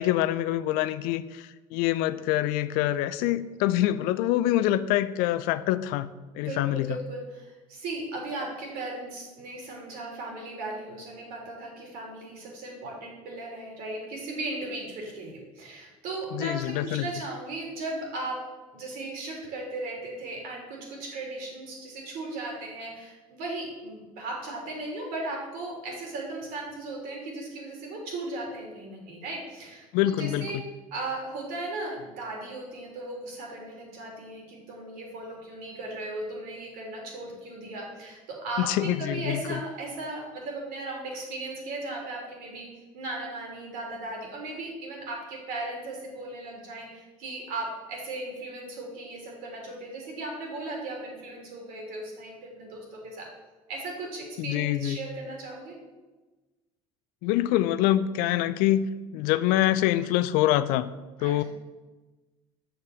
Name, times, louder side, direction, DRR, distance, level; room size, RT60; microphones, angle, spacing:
voice 1, 0.0-7.0 16.3-17.1 29.9-30.5 38.6-39.6 54.4-55.0 57.2-60.9 61.2-61.4, left 13 dB, 60° left, 14 dB, 0.5 m, -25 dB
voice 2, 6.4-18.4 18.7-30.6 30.9-42.7 42.9-53.3 53.7-55.7 61.2-61.4, right 2 dB, 60° right, -1 dB, 3.3 m, -37 dB
6.7 x 6.6 x 7.1 m, 1.2 s
hypercardioid pair, 65°, 17 cm